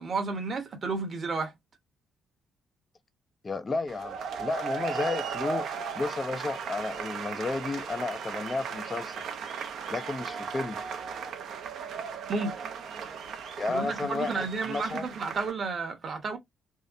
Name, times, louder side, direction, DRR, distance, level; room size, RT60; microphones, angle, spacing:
voice 1, 0.0-1.5 12.3-12.6 13.7-16.4, right 4 dB, 45° right, 0.9 m, -32 dB
voice 2, 3.4-5.7 6.0-9.2 9.9-10.8 13.6-15.0, left 3 dB, 30° left, 0.3 m, -32 dB
sound 1, 3.9-15.5, right 6 dB, 70° right, 0.5 m, -36 dB
2.7 x 2.0 x 2.4 m
cardioid pair, 90°, 0 cm